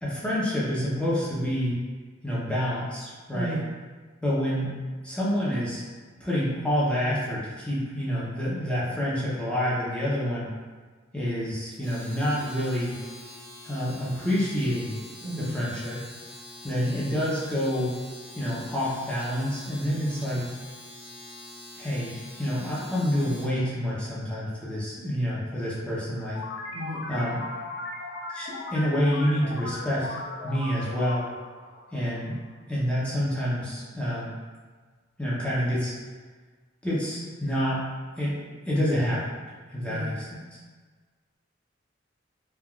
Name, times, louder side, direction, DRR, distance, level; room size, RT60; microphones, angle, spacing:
voice 1, 0.0-1.8 2.2-3.6 4.2-4.7 5.0-5.8 6.2-10.5 11.1-12.9 13.6-15.0 15.4-16.0 16.6-17.9 18.4-20.5 21.8-26.4 27.1-27.4 28.3-31.3 31.9-32.4 32.7-34.3 35.2-35.9 36.8-37.8 38.2-39.4 39.7-40.6, equal, 5° left, -8 dB, 0.5 m, -28 dB
voice 2, 3.3-3.7 15.2-15.5 26.7-27.1 39.9-40.2, right 1 dB, 60° right, -4 dB, 0.5 m, -33 dB
Domestic sounds home sounds, 11.7-23.6, left 1 dB, 25° left, 1.3 m, -45 dB
sound 1, 26.3-32.6, left 2 dB, 55° left, 0.4 m, -37 dB
3.2 x 2.3 x 2.3 m, 1.4 s
head